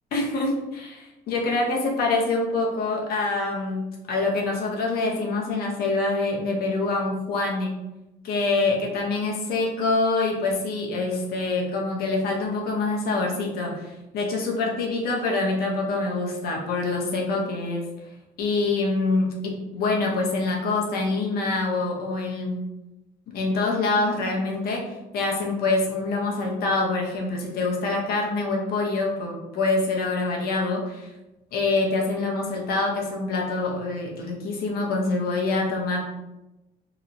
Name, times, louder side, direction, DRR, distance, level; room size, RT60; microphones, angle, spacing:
voice 1, 0.1-7.7 8.2-17.9 18.4-22.6 23.3-31.1 31.5-36.0, left 3 dB, 65° left, 0 dB, 0.6 m, -25 dB
2.9 x 2.1 x 2.5 m, 0.96 s
cardioid pair, 110°, 17 cm